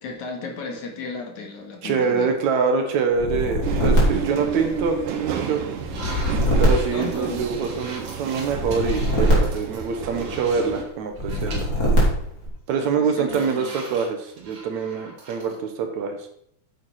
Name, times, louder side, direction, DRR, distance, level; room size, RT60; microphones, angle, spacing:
voice 1, 0.0-2.3 6.9-7.5 12.8-13.8, left 4 dB, 65° left, 2 dB, 2.9 m, -34 dB
voice 2, 1.8-5.6 6.6-11.7 12.7-16.2, right 5 dB, 70° right, 5 dB, 2.3 m, -25 dB
sound 1, 3.1-5.1 5.8-7.7 8.5-10.4 11.1-12.5, equal, 25° left, 4.0 m, -22 dB
sound 2, 3.6-10.8, right 7 dB, 90° right, 2.8 m, -31 dB
sound 3, 3.8-4.2 4.6-4.8 5.3-10.9 11.2-11.9 12.3-12.4 12.7-15.6, right 2 dB, 50° right, 3.6 m, -41 dB
9.6 x 7.3 x 5.7 m, 0.71 s
omnidirectional pair, 3.7 m